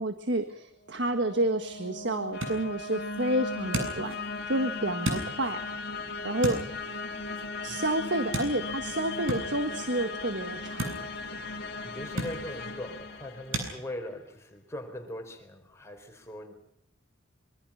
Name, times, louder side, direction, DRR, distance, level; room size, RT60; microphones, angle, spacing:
voice 1, 0.0-4.2 4.5-5.6 6.2-6.6 7.6-11.0, right 1 dB, 60° right, 8 dB, 1.7 m, -29 dB
sound 1, 0.9-13.9, left 3 dB, 55° left, 2.7 m, -37 dB
sound 2, 1.2-13.7, right 1 dB, 85° right, 7.8 m, -39 dB
voice 2, 11.8-16.5, left 1 dB, 15° left, 3 dB, 4.5 m, -41 dB
25.5 x 24.5 x 5.8 m, 0.70 s
head